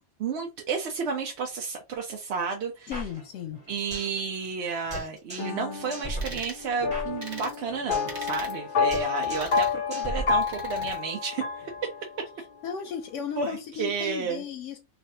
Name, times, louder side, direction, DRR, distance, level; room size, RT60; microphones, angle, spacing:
voice 1, 0.2-2.9 3.7-11.4 13.4-13.5 13.8-14.4, right 5 dB, 65° right, 0.8 m, -31 dB
voice 2, 2.9-3.6 12.6-14.8, left 8 dB, 90° left, 0.9 m, -35 dB
sound 1, 2.9-4.2 4.4-4.5 4.9-5.6 5.9-8.2 8.4-8.6 8.9-9.6 9.9-10.9, right 1 dB, 5° right, 1.3 m, -38 dB
sound 2, 5.4-12.4, left 6 dB, 50° left, 0.7 m, -30 dB
sound 3, 6.2-6.6 7.2-7.6 8.1-8.6 9.2-9.8 10.4-11.0, right 3 dB, 85° right, 1.4 m, -40 dB
3.2 x 2.4 x 2.7 m
omnidirectional pair, 1.2 m